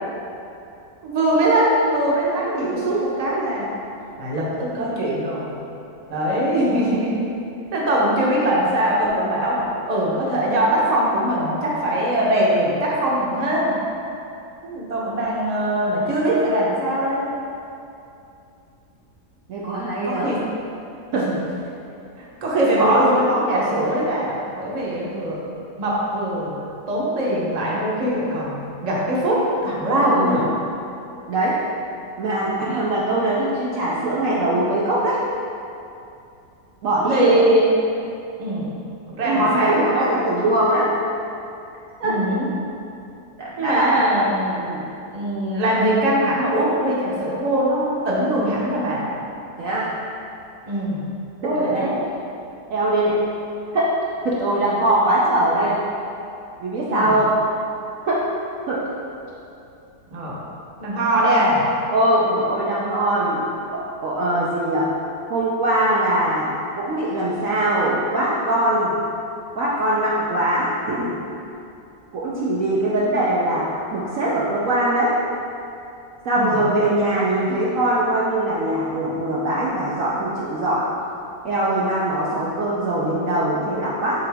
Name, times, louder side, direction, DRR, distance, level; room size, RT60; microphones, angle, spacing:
voice 1, 1.0-3.7 4.2-5.5 6.1-7.2 7.7-9.6 9.9-13.7 14.6-17.3 20.0-20.4 21.1-21.3 22.2-25.4 25.8-26.5 26.9-30.4 37.1-37.7 38.4-38.7 39.2-40.1 42.0-42.5 43.6-44.7 45.1-49.1 50.7-51.0 51.4-52.0 56.9-57.1 60.1-60.3 60.8-61.6 76.3-76.6, right 1 dB, 30° right, -5 dB, 0.9 m, -21 dB
voice 2, 19.5-20.3 21.1-21.3 22.8-23.2 30.0-30.4 31.3-31.6 32.2-35.2 36.8-37.3 39.2-40.9 42.0-42.2 43.4-43.9 44.5-44.8 49.6-49.9 51.4-51.9 52.7-53.2 53.7-53.9 54.2-55.8 56.6-57.4 58.1-58.3 58.7-58.9 61.2-61.5 61.9-63.5 63.7-64.9 65.3-69.0 69.5-71.2 72.1-75.2 76.2-80.9 81.4-84.3, right 1 dB, 60° right, -6 dB, 1.0 m, -22 dB
6.8 x 4.4 x 3.5 m, 2.7 s
omnidirectional pair, 1.8 m